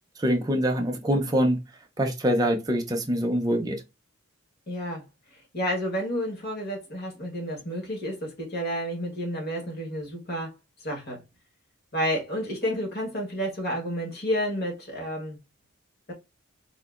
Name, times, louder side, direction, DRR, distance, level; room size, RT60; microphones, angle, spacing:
voice 1, 0.2-1.6 2.0-3.8, equal, 20° right, 0.5 m, -24 dB
voice 2, 4.7-5.0 5.5-10.5 10.8-11.2 11.9-15.4 16.1-16.2, equal, 50° left, 1.2 m, -30 dB
3.7 x 2.3 x 2.3 m
head